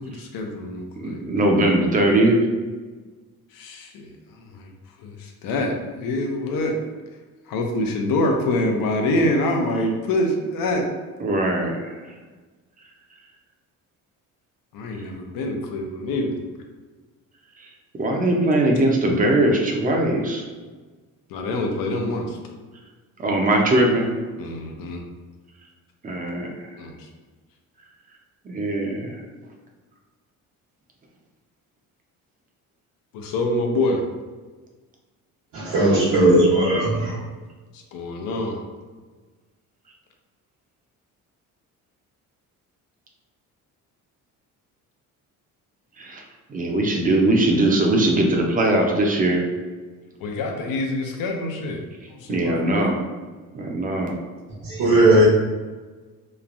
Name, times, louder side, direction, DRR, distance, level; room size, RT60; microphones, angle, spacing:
voice 1, 0.0-1.2 3.5-4.7 5.0-6.8 7.5-10.9 14.7-16.3 21.3-22.4 24.4-25.0 26.8-27.1 33.1-34.0 37.7-38.6 50.2-51.8 52.1-52.9, left 1 dB, 80° left, 2 dB, 0.6 m, -26 dB
voice 2, 0.9-2.4 11.2-11.8 18.0-20.4 23.2-24.1 26.0-26.7 28.4-29.2 46.0-46.2 46.5-49.4 52.3-53.0 53.5-54.2, right 1 dB, 25° right, 0 dB, 0.5 m, -20 dB
voice 3, 35.5-37.2 54.6-55.2, right 1 dB, 70° right, -11 dB, 1.1 m, -17 dB
3.1 x 2.2 x 2.5 m, 1.3 s
cardioid pair, 115°, 34 cm